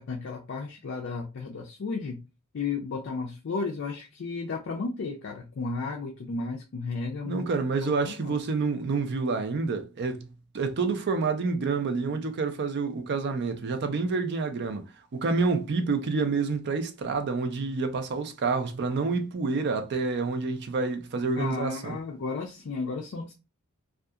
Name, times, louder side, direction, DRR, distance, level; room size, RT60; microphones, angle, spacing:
voice 1, 0.0-2.2 2.5-7.4 7.8-8.4 21.4-23.3, left 4 dB, 55° left, 0.4 m, -33 dB
voice 2, 7.2-14.9 15.1-22.0, right 4 dB, 50° right, 0.4 m, -28 dB
2.7 x 2.3 x 2.3 m
head